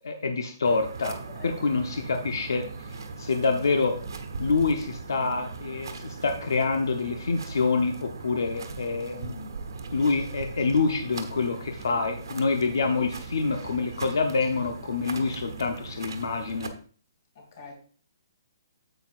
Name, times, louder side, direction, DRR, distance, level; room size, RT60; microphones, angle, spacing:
voice 1, 0.0-1.2 1.4-2.9 3.2-4.0 4.4-9.5 9.9-16.7, left 4 dB, 75° left, 1.0 m, -26 dB
sound 1, 0.6-16.7, right 4 dB, 75° right, 1.3 m, -39 dB
voice 2, 1.0-1.6 12.3-12.4 17.4-17.7, left 4 dB, 35° left, 2.6 m, -45 dB
9.3 x 7.8 x 2.5 m
hypercardioid pair, 175°, 2 cm